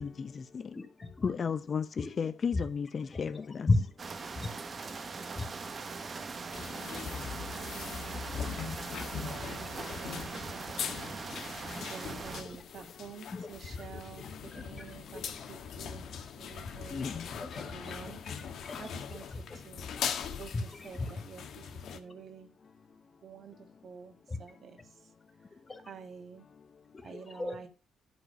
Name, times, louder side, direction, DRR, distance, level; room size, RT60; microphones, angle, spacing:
voice 1, 0.7-1.3 2.0-2.7 3.0-3.9 4.3-4.5 5.3-5.5 9.0-9.1 9.4-9.5 11.3-11.9 12.4-12.6 13.3-15.5 16.6-19.6 19.9-20.0 20.5-21.1 24.3-24.4 25.5-25.8 26.9-27.6, left 2 dB, 25° left, 1.8 m, -37 dB
voice 2, 1.2-3.7 16.9-17.2, left 6 dB, 45° left, 0.7 m, -33 dB
sound 1, 4.0-12.4, right 4 dB, 40° right, 1.1 m, -41 dB
sound 2, 6.5-22.0, left 7 dB, 70° left, 1.3 m, -41 dB
voice 3, 7.3-8.8 9.2-10.9 11.2-15.2 15.5-16.1 16.4-18.2 18.8-19.3 19.6-20.0 20.4-22.5 23.2-25.1 25.9-26.5 27.0-27.7, right 6 dB, 55° right, 1.6 m, -49 dB
11.0 x 4.8 x 5.5 m
cardioid pair, 90°, 0 cm